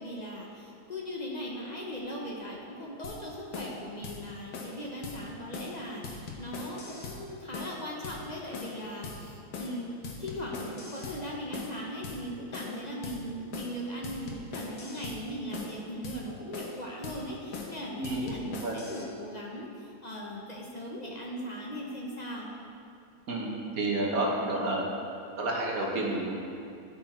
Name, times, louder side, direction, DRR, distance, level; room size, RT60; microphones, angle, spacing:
voice 1, 0.0-9.9 10.2-22.5, equal, 35° left, -2 dB, 0.7 m, -39 dB
sound 1, 3.0-3.2 3.5-3.7 4.0-4.2 4.5-4.8 5.0-5.2 5.5-5.7 6.0-7.2 7.5-7.8 8.0-8.2 8.5-8.8 9.0-9.2 9.5-9.8 10.0-11.2 11.5-11.7 12.0-12.2 12.5-12.8 13.0-13.2 13.5-13.8 14.0-15.2 15.5-15.7 16.0-16.2 16.5-16.8 17.0-17.2 17.5-17.7 18.0-19.0, left 4 dB, 85° left, 1.5 m, -40 dB
voice 2, 18.0-18.8 23.3-24.8 25.4-26.3, right 2 dB, 70° right, -2 dB, 1.7 m, -30 dB
12.0 x 4.2 x 4.3 m, 2.5 s
omnidirectional pair, 1.6 m